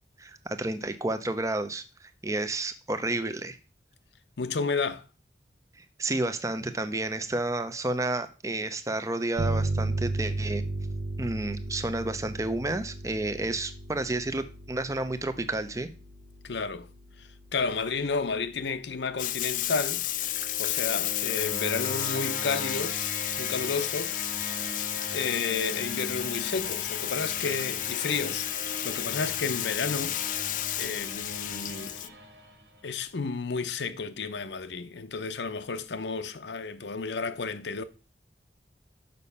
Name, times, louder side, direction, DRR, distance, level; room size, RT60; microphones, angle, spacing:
voice 1, 0.2-3.6 5.8-10.6 11.2-15.9, right 2 dB, 15° right, 0.6 m, -31 dB
voice 2, 4.4-5.1 16.4-16.9 17.2-20.1 20.6-24.2 25.1-28.5 28.8-30.2 30.8-32.1 32.8-37.8, left 4 dB, 80° left, 0.7 m, -32 dB
sound 1, 9.4-18.7, right 2 dB, 55° right, 0.7 m, -35 dB
Bathtub (filling or washing), 19.2-32.1, left 14 dB, 45° left, 0.4 m, -32 dB
sound 2, 20.0-33.0, left 1 dB, 75° right, 1.9 m, -41 dB
6.9 x 5.5 x 5.5 m
head